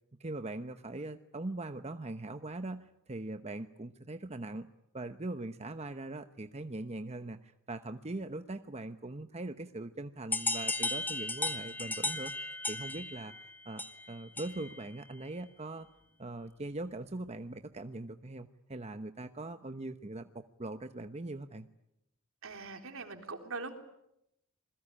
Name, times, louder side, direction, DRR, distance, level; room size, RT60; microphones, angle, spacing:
voice 1, 0.2-4.7 4.9-15.9 16.2-21.7, right 2 dB, 30° right, 9 dB, 1.0 m, -41 dB
sound 1, 10.3-14.8, left 2 dB, 10° left, 1.7 m, -36 dB
voice 2, 22.4-23.7, right 3 dB, 65° right, 6 dB, 3.8 m, -42 dB
28.0 x 21.5 x 9.9 m, 0.83 s
head